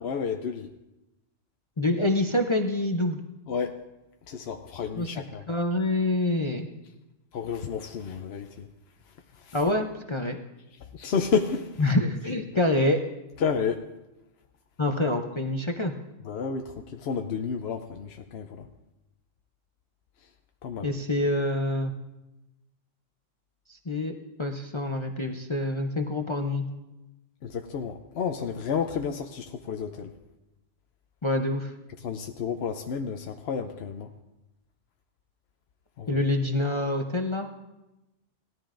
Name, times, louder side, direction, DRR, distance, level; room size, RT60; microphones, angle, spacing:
voice 1, 0.0-0.7 3.5-3.8 4.3-5.4 7.3-8.7 9.3-9.6 10.8-11.8 13.4-13.9 16.2-18.7 20.6-20.9 27.4-30.1 32.0-34.1 36.0-36.2, left 6 dB, 60° left, 5 dB, 0.8 m, -31 dB
voice 2, 1.8-3.2 5.0-5.1 5.5-6.7 9.5-10.4 11.8-13.0 14.8-15.9 20.8-21.9 23.7-24.1 24.4-26.6 31.2-31.7 36.1-37.5, left 1 dB, 30° left, 3 dB, 0.5 m, -26 dB
18.5 x 13.5 x 2.5 m, 0.98 s
omnidirectional pair, 1.3 m